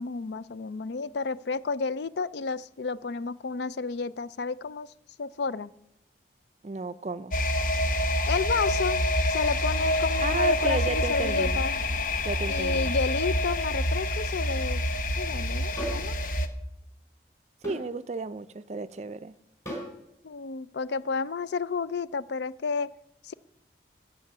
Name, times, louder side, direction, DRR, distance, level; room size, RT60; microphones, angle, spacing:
voice 1, 0.0-4.9 5.2-5.7 8.3-9.0 9.3-11.8 12.5-14.8 15.2-16.1 20.2-22.9 23.2-23.3, left 4 dB, 70° left, 17 dB, 0.4 m, -31 dB
voice 2, 6.6-7.3 10.2-11.6 12.2-12.9 17.6-19.3, right 3 dB, 35° right, 13 dB, 0.4 m, -33 dB
sound 1, 7.3-16.5, left 1 dB, 45° left, 0.9 m, -27 dB
sound 2, 15.8-16.1 17.6-17.9 19.7-19.9, equal, 15° left, 4.4 m, -34 dB
14.0 x 8.3 x 6.6 m, 0.82 s
head